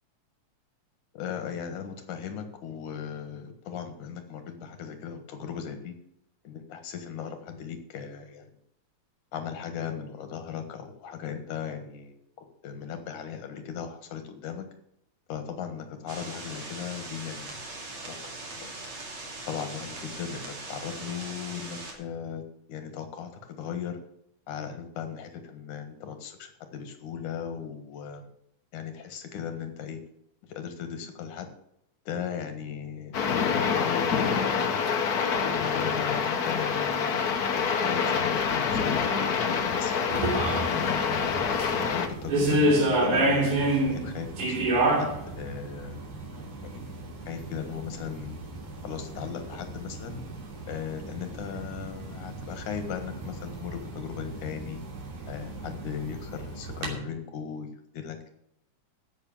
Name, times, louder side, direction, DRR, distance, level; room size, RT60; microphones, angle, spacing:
voice 1, 1.1-6.0 6.4-8.5 9.3-14.7 15.3-17.6 18.1-18.2 18.6-18.8 19.5-24.0 24.5-28.3 28.7-30.0 30.4-31.5 32.1-34.8 35.4-37.2 37.5-39.9 40.4-41.4 41.8-44.6 45.0-46.0 46.6-46.9 47.3-48.4 48.8-50.2 50.7-54.8 55.3-58.2, left 7 dB, 85° left, 7 dB, 3.0 m, -37 dB
sound 1, 16.1-21.9, right 2 dB, 65° right, 4.0 m, -40 dB
sound 2, 33.1-42.1, left 6 dB, 70° left, 0.9 m, -26 dB
sound 3, 40.1-56.9, right 1 dB, 85° right, 4.4 m, -30 dB
15.0 x 6.1 x 7.2 m, 0.75 s
omnidirectional pair, 3.4 m